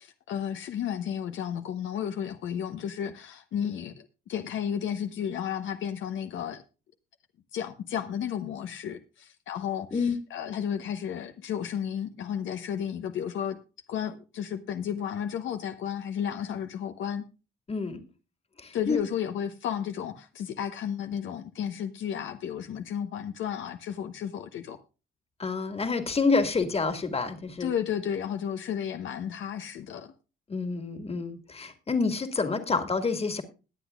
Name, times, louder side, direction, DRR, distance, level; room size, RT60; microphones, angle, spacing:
voice 1, 0.0-6.6 7.5-13.6 13.9-17.3 18.7-24.8 27.6-30.1, left 9 dB, 75° left, 0.9 m, -33 dB
voice 2, 17.7-18.0 18.6-19.0 25.4-27.7 30.5-33.4, left 4 dB, 30° left, 1.9 m, -28 dB
20.5 x 8.1 x 2.4 m
cardioid pair, 90°, 20 cm